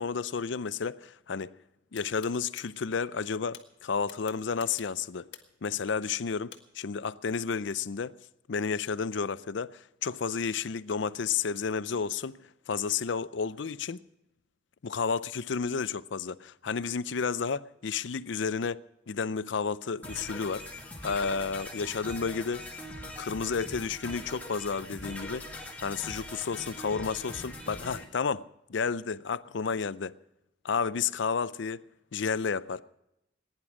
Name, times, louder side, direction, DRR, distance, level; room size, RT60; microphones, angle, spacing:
voice 1, 0.0-1.5 1.9-5.3 5.6-8.2 8.5-12.4 12.7-14.0 14.8-18.8 19.1-20.7 21.0-22.6 23.2-25.5 25.8-28.4 28.7-30.2 30.6-31.8 32.1-32.8, left 5 dB, 75° left, 0.5 m, -31 dB
sound 1, 1.9-2.7 3.5-3.6 4.1-5.6 6.5-6.6, left 9 dB, 55° left, 1.7 m, -47 dB
sound 2, 20.0-28.0, left 1 dB, 10° left, 2.2 m, -42 dB
20.0 x 10.5 x 6.1 m
head